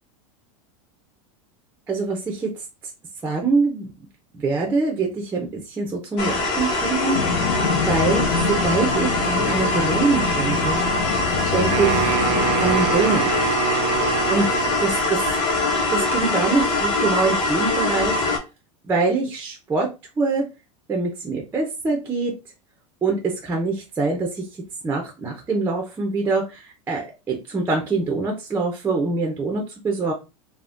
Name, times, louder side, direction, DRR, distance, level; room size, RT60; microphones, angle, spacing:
voice 1, 1.9-2.5 3.2-3.9 4.3-7.2 7.8-10.8 11.5-12.2 12.6-13.6 14.3-14.5 14.8-15.2 15.9-18.2 18.9-19.9 20.2-20.4 20.9-22.3 23.0-24.4 24.8-30.1, right 3 dB, 10° right, 0 dB, 0.4 m, -24 dB
sound 1, 6.2-18.4, left 2 dB, 60° left, 1.0 m, -23 dB
sound 2, 7.1-13.0, left 4 dB, 75° left, 0.6 m, -26 dB
Wind instrument woodwind instrument, 11.7-15.2, right 9 dB, 80° right, 0.5 m, -26 dB
3.5 x 2.0 x 2.4 m, 0.28 s
supercardioid pair, 150°, 17 cm